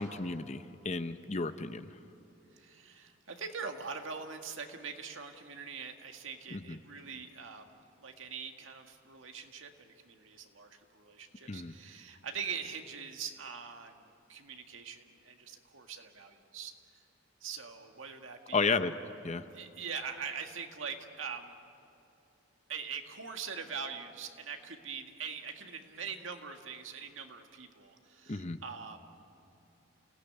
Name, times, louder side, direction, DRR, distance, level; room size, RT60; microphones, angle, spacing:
voice 1, 0.0-1.9 6.5-6.8 11.5-11.7 18.5-18.9 19.2-19.4 28.3-28.6, left 4 dB, 35° left, 11 dB, 0.7 m, -33 dB
voice 2, 2.5-16.7 17.4-18.6 19.5-21.5 22.7-29.2, right 6 dB, 75° right, 4 dB, 1.9 m, -43 dB
29.5 x 17.0 x 9.5 m, 2.8 s
head